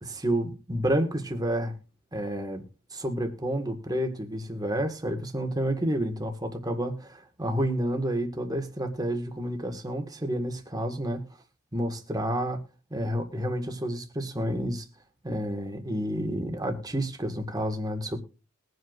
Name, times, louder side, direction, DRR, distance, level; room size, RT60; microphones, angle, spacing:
voice 1, 0.0-1.7 2.1-2.6 2.9-11.2 11.7-12.6 12.9-14.8 15.2-18.2, right 1 dB, 15° right, 5 dB, 1.6 m, -30 dB
21.5 x 7.9 x 2.4 m, 0.33 s
head